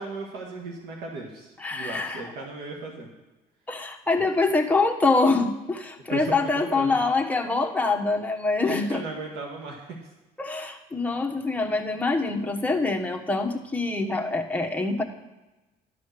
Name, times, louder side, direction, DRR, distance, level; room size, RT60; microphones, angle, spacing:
voice 1, 0.0-3.1 6.1-7.0 8.6-10.0, right 3 dB, 85° right, -1 dB, 1.7 m, -36 dB
voice 2, 1.6-2.3 3.7-9.0 10.4-15.0, left 3 dB, 10° left, 2 dB, 1.2 m, -25 dB
12.0 x 5.2 x 6.7 m, 1.1 s
cardioid pair, 110°, 17 cm